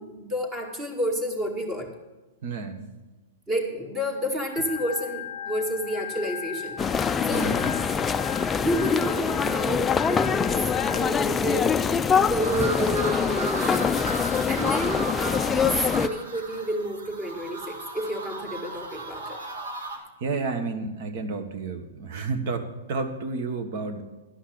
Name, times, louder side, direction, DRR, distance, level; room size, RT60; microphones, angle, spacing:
voice 1, 0.0-1.9 3.5-6.8 7.3-7.5 8.5-11.8 12.3-13.9 14.5-19.4, equal, 20° right, 2 dB, 2.3 m, -30 dB
voice 2, 2.4-2.8 7.3-7.8 19.9-24.0, right 4 dB, 55° right, 8 dB, 1.5 m, -31 dB
Organ, 4.6-11.0, left 9 dB, 50° left, 0.7 m, -37 dB
sound 1, 6.8-16.1, left 6 dB, 15° left, 0.4 m, -24 dB
sound 2, 12.4-20.0, right 2 dB, 85° right, 1.9 m, -35 dB
11.5 x 5.8 x 8.5 m, 1.2 s
hypercardioid pair, 135°, 0 cm